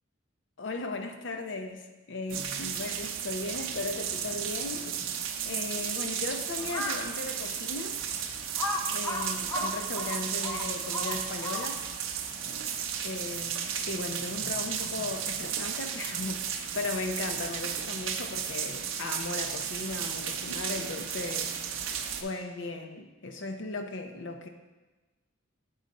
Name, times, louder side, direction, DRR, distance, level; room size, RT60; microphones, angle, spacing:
voice 1, 0.6-4.9 5.4-8.0 8.9-11.8 13.0-21.5 22.2-24.5, left 3 dB, 60° left, 6 dB, 0.6 m, -37 dB
sound 1, 2.3-22.2, right 8 dB, 75° right, 0.6 m, -34 dB
Crow, 6.6-7.1 7.7-7.8 8.6-12.0, left 1 dB, 10° left, 0.4 m, -34 dB
8.6 x 3.9 x 4.0 m, 1.2 s
head